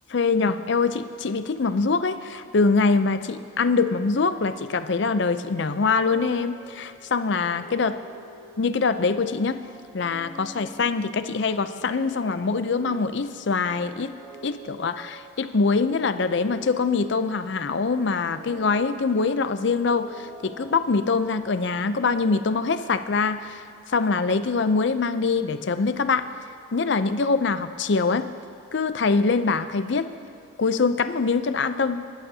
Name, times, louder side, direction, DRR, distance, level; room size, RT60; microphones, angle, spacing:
voice 1, 0.1-8.0 8.6-9.6 9.9-14.2 14.4-26.3 26.7-28.3 28.7-30.1 30.6-32.1, left 4 dB, 55° left, 11 dB, 0.5 m, -24 dB
sound 1, 5.7-22.9, right 1 dB, 25° right, 2.2 m, -47 dB
23.5 x 11.5 x 2.8 m, 2.7 s
head